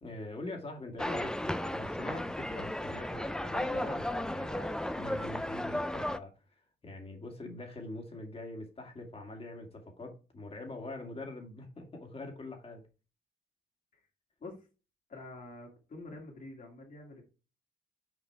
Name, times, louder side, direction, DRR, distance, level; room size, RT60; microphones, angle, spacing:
voice 1, 0.0-6.3 6.8-12.8, left 2 dB, 30° left, 2.1 m, -43 dB
sound 1, 1.0-6.2, left 1 dB, 5° left, 0.4 m, -35 dB
voice 2, 15.1-17.2, left 2 dB, 50° left, 2.5 m, -47 dB
6.1 x 4.9 x 4.6 m
cardioid pair, 95°, 18 cm